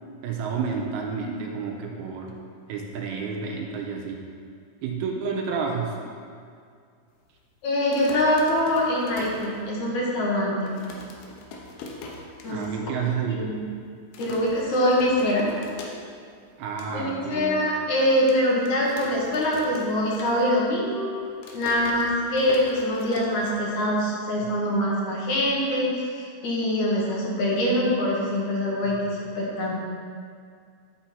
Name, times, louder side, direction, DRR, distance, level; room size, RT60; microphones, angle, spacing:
voice 1, 0.2-2.4 2.7-4.3 4.8-6.0 12.5-13.5 16.6-17.5, right 5 dB, 80° right, 0 dB, 2.6 m, -30 dB
voice 2, 7.6-10.8 12.4-12.9 13.3-13.6 14.2-15.5 16.9-21.1 21.5-29.7, left 1 dB, 60° left, -4 dB, 2.2 m, -24 dB
sound 1, 7.8-10.1 10.4-10.5 10.7-12.7 13.1-13.2 13.4-13.8 14.1-16.3 16.6-16.9 17.4-17.5 18.3-20.7 21.0-24.0, left 3 dB, 85° left, 2.9 m, -41 dB
11.5 x 4.4 x 4.2 m, 2.2 s
omnidirectional pair, 4.5 m